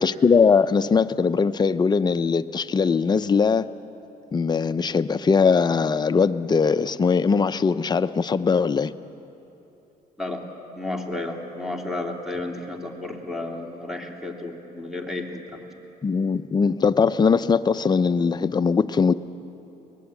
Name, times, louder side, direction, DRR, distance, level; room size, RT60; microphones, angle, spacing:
voice 1, 0.0-3.7 4.3-8.9 16.0-19.1, left 5 dB, 25° left, 11 dB, 0.6 m, -20 dB
voice 2, 10.8-15.6, left 2 dB, ahead, 1 dB, 2.8 m, -32 dB
22.5 x 20.0 x 8.4 m, 2.9 s
cardioid pair, 110°, 17 cm